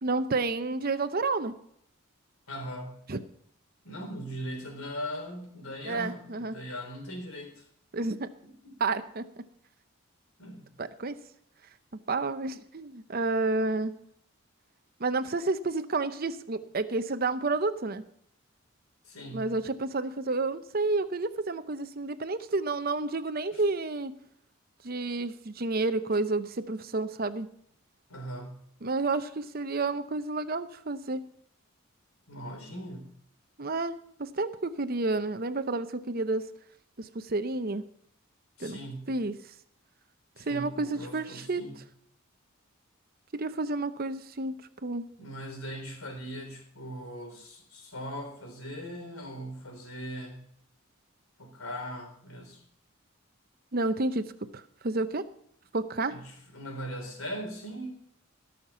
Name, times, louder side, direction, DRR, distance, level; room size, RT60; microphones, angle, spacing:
voice 1, 0.0-1.5 3.1-3.2 5.8-6.5 7.9-8.3 8.8-9.3 10.8-11.2 11.9-13.9 15.0-18.0 19.3-24.1 24.8-27.5 28.8-31.2 33.6-36.4 37.0-37.9 38.6-38.8 39.1-39.4 40.4-41.6 43.3-45.1 53.7-55.2 55.7-56.2, right 3 dB, 45° right, 11 dB, 0.7 m, -30 dB
voice 2, 2.5-3.0 3.8-7.7 8.6-8.7 10.4-10.7 19.0-19.5 23.5-23.6 28.1-28.6 32.3-33.1 38.6-39.1 40.4-41.8 45.2-50.4 51.4-52.6 56.1-57.9, equal, 90° left, 3 dB, 3.9 m, -40 dB
18.0 x 6.6 x 5.6 m, 0.70 s
head